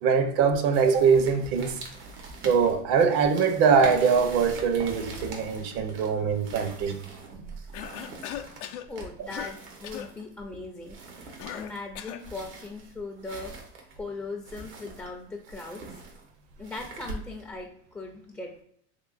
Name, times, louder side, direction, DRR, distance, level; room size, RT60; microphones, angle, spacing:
voice 1, 0.0-1.8 2.4-7.0, right 6 dB, 60° right, 0.7 m, -22 dB
sound 1, 0.7-17.6, right 3 dB, 90° right, 1.0 m, -43 dB
Cough, 7.7-8.9 9.3-9.6 9.8-10.1 11.4-12.3, left 11 dB, 85° left, 0.5 m, -38 dB
voice 2, 8.9-11.0 11.5-13.5 14.0-15.8 16.6-18.6, left 3 dB, 5° left, 0.3 m, -39 dB
3.7 x 3.1 x 2.4 m
supercardioid pair, 115°, 33 cm